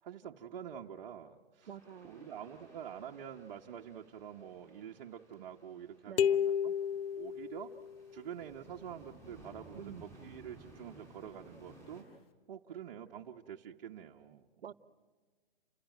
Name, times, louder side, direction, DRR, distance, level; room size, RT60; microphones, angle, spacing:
voice 1, 0.0-1.7 2.0-6.8 7.1-7.7 8.1-12.0 12.5-14.7, right 9 dB, 45° right, 0 dB, 1.1 m, -47 dB
sound 1, 1.6-12.0, right 1 dB, 10° left, 7.1 m, -58 dB
voice 2, 1.7-2.3 6.1-6.5 9.7-10.1 14.6-14.7, right 9 dB, 80° right, 15 dB, 1.0 m, -48 dB
sound 2, 6.2-8.1, left 8 dB, 80° left, 0.7 m, -32 dB
29.0 x 15.0 x 9.2 m, 1.4 s
hypercardioid pair, 155°, 29 cm